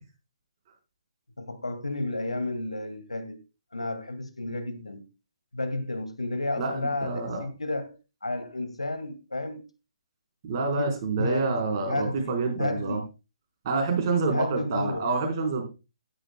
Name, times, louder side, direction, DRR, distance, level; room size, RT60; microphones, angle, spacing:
voice 1, 1.4-3.4 3.7-5.0 5.5-8.0 8.2-9.7 10.8-13.0 14.3-15.1, left 2 dB, 75° left, 2.2 m, -32 dB
voice 2, 6.6-7.4 10.4-13.0 13.6-15.6, right 3 dB, 35° right, 4.3 m, -27 dB
14.5 x 11.5 x 2.2 m
figure-of-eight pair, 135°, 3 cm